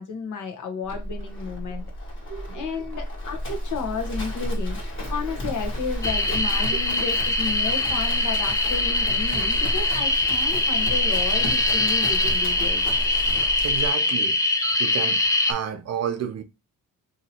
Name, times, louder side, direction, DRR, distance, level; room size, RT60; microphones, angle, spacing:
voice 1, 0.0-1.8 2.5-4.8 5.1-12.8, left 5 dB, 65° left, 0.9 m, -32 dB
Livestock farm animals working animals, 0.9-13.9, equal, 40° left, 1.4 m, -31 dB
voice 2, 2.3-2.7 9.3-9.5 13.6-14.4 14.8-15.2 15.5-16.4, right 9 dB, 50° right, 0.7 m, -31 dB
sound 1, 6.0-15.5, left 2 dB, 10° left, 0.3 m, -23 dB
2.8 x 2.7 x 4.2 m
wide cardioid pair, 155°, 32 cm